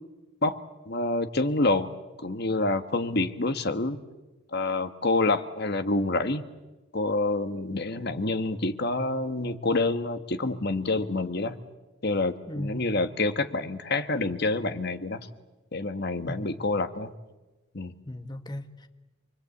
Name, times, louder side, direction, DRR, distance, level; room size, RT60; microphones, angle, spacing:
voice 1, 0.4-1.9 2.2-4.0 4.5-6.4 6.9-11.6 12.0-15.3 15.7-17.1 17.7-18.0, left 2 dB, 50° left, 10 dB, 1.3 m, -27 dB
voice 2, 12.5-12.9 16.3-16.7 18.1-18.9, left 1 dB, 20° left, 7 dB, 1.1 m, -37 dB
27.5 x 22.0 x 8.4 m, 1.1 s
head